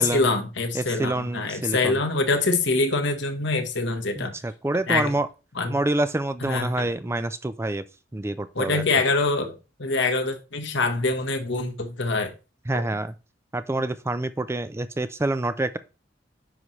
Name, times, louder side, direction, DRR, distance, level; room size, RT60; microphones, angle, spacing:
voice 1, 0.0-4.3 4.9-5.1 5.5-5.7 6.4-6.9 8.5-12.3 12.7-12.8, left 3 dB, 65° left, 1.3 m, -25 dB
voice 2, 0.7-2.0 4.2-5.3 5.7-7.8 8.1-8.8 12.7-13.1 13.5-15.8, right 2 dB, 15° right, 0.4 m, -27 dB
9.7 x 5.7 x 3.2 m
head